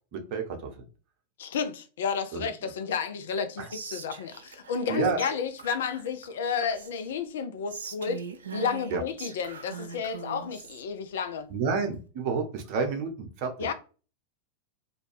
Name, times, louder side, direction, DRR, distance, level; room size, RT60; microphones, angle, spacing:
voice 1, 0.1-0.8 2.3-2.5 3.6-3.7 4.9-5.2 8.9-9.0 11.5-13.5, right 5 dB, 45° right, 0.7 m, -30 dB
voice 2, 1.4-8.2 8.5-11.5 13.6-13.7, left 6 dB, 60° left, 0.4 m, -31 dB
Whispering, 3.7-4.9 5.2-5.3 5.6-7.1 7.7-10.8, right 6 dB, 70° right, 0.4 m, -41 dB
2.5 x 2.2 x 3.1 m
figure-of-eight pair, 90°, 0 cm